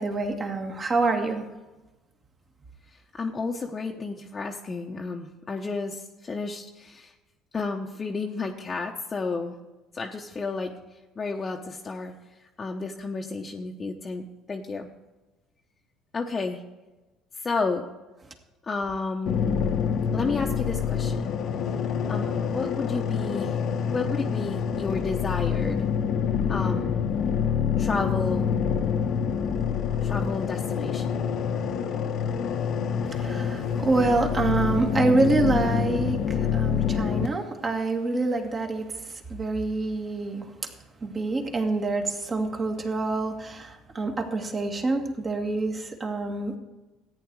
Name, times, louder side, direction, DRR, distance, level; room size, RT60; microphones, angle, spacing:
voice 1, 0.0-1.4 33.1-38.8 39.3-40.5 41.0-46.6, right 3 dB, 35° right, 3 dB, 2.1 m, -26 dB
voice 2, 2.9-7.1 7.5-9.6 9.9-10.8 11.2-12.1 12.6-14.9 16.1-16.6 17.4-17.8 18.6-19.6 20.1-21.4 22.1-23.6 23.9-25.9 26.5-26.9 27.8-28.5 30.0-31.2, left 4 dB, 30° left, 1 dB, 1.0 m, -31 dB
sound 1, 19.3-37.3, left 7 dB, 60° left, 1.0 m, -26 dB
14.0 x 9.3 x 4.8 m, 1.1 s
hypercardioid pair, 70°, 0 cm